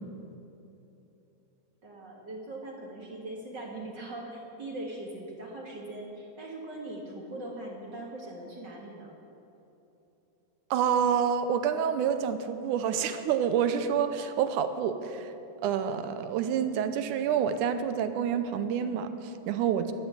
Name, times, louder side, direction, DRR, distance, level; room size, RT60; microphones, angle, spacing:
voice 1, 1.8-9.1, right 1 dB, 40° right, -1 dB, 1.8 m, -40 dB
voice 2, 10.7-15.3 15.6-19.9, right 8 dB, 75° right, 10 dB, 2.1 m, -28 dB
13.0 x 11.0 x 8.2 m, 3.0 s
omnidirectional pair, 4.0 m